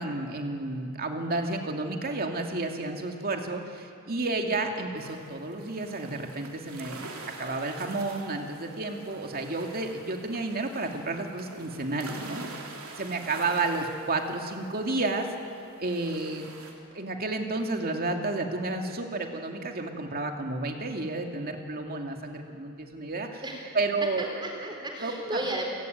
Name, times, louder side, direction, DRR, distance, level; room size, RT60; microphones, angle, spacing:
voice 1, 0.0-7.1 7.4-12.4 13.0-15.3 15.8-16.4 16.9-23.4 23.7-24.3 25.0-25.1, right 2 dB, 45° right, 3 dB, 2.5 m, -31 dB
sound 1, 5.0-15.3 15.6-16.7, right 3 dB, 70° right, 3.1 m, -45 dB
voice 2, 24.2-25.6, right 1 dB, 20° right, 1 dB, 3.6 m, -34 dB
29.5 x 17.5 x 9.4 m, 2.5 s
head